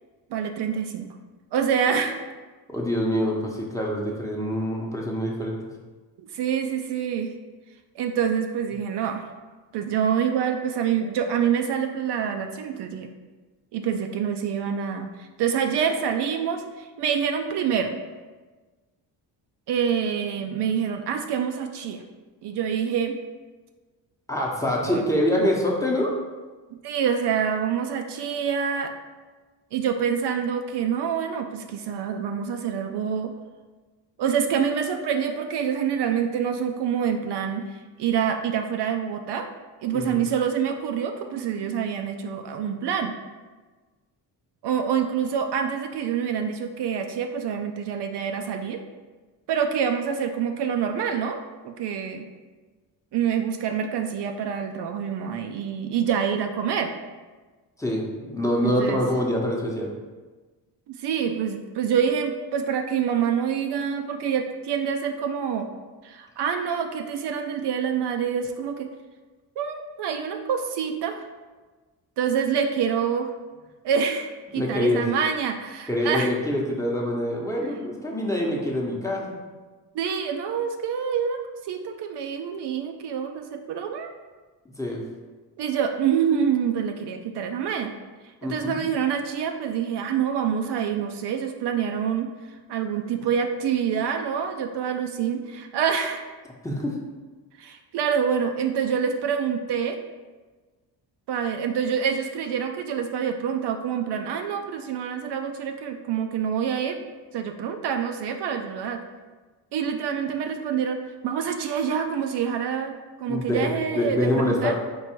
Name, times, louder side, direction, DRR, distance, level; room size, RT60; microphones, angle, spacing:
voice 1, 0.3-1.1 1.5-2.2 6.2-7.3 8.0-9.2 9.7-13.1 13.7-17.9 19.7-22.0 22.4-23.2 24.8-25.0 25.4-25.5 26.8-28.9 29.7-33.3 34.2-39.5 39.8-43.2 44.6-48.8 49.5-51.4 51.6-52.3 53.1-56.9 58.6-59.0 60.9-65.7 66.0-68.9 69.6-71.3 72.2-73.3 73.8-76.3 79.9-81.4 81.7-84.1 85.6-87.9 88.4-92.3 92.7-96.2 97.6-100.0 101.3-107.0 107.3-109.0 109.7-114.8, right 7 dB, 65° right, 5 dB, 0.5 m, -26 dB
voice 2, 2.7-5.6 24.3-26.1 39.9-40.1 57.8-59.9 74.5-75.0 75.9-79.3 84.8-85.0 88.4-88.8 93.2-93.3 96.6-96.9 113.3-114.7, left 1 dB, 5° left, -3 dB, 0.8 m, -25 dB
4.6 x 2.6 x 4.4 m, 1.3 s
cardioid pair, 90°, 44 cm